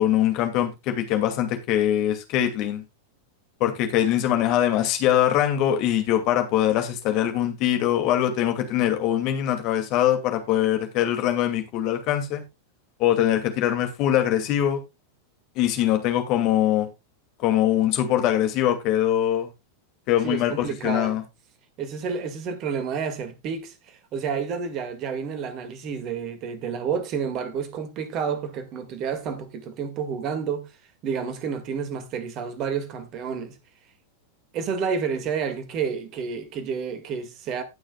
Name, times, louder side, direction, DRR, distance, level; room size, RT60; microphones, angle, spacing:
voice 1, 0.0-2.8 3.6-12.4 13.0-14.8 15.6-16.9 17.4-19.5 20.1-21.2, left 11 dB, 40° left, 2.4 m, -22 dB
voice 2, 20.2-21.2 21.8-30.7 31.0-33.6 34.5-37.6, right 6 dB, 35° right, 2.0 m, -30 dB
18.5 x 6.4 x 2.3 m
figure-of-eight pair, 90°, 0 cm